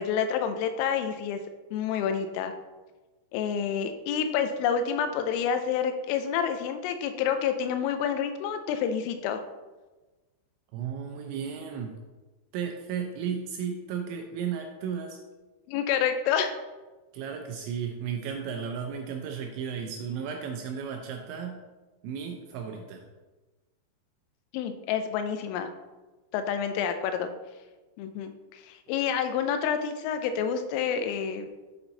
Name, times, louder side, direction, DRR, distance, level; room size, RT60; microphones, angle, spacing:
voice 1, 0.0-1.4 1.7-2.5 3.3-9.4 15.7-16.6 24.5-25.7 26.3-27.3 28.0-31.5, left 7 dB, 85° left, 8 dB, 3.2 m, -28 dB
voice 2, 10.7-11.9 12.5-15.2 17.1-21.6 22.0-23.0, right 7 dB, 80° right, 3 dB, 2.7 m, -34 dB
8.7 x 4.3 x 4.0 m, 1.2 s
omnidirectional pair, 5.7 m